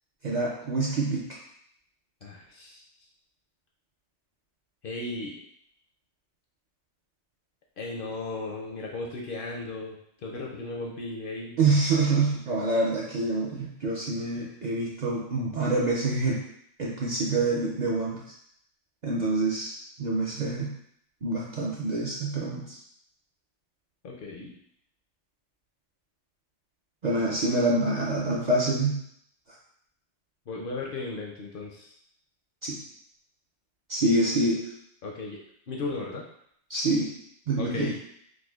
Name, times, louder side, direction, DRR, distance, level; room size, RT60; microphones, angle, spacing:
voice 1, 0.2-1.3 11.6-16.4 16.8-18.2 19.0-20.7 21.2-22.8 27.0-29.0 32.6-32.8 33.9-34.6 36.7-37.1 37.5-37.9, right 2 dB, 55° right, -4 dB, 0.5 m, -26 dB
voice 2, 2.2-2.8 4.8-5.4 7.8-10.0 10.2-11.6 24.0-24.5 30.5-31.9 35.0-35.4 35.7-36.3 37.6-38.0, left 3 dB, 60° left, -1 dB, 0.6 m, -35 dB
4.8 x 2.2 x 2.3 m, 0.69 s
omnidirectional pair, 1.2 m